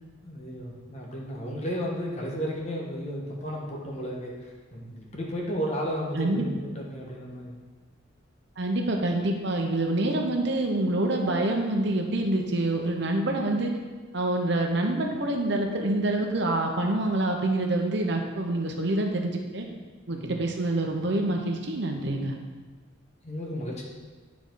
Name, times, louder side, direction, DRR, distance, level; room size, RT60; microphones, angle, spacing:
voice 1, 0.2-7.6 20.1-20.5 23.2-23.8, equal, 35° left, -2 dB, 1.3 m, -33 dB
voice 2, 8.6-13.7 14.1-19.7 20.1-22.3, right 2 dB, 65° right, 2 dB, 0.9 m, -26 dB
9.5 x 4.9 x 3.9 m, 1.5 s
head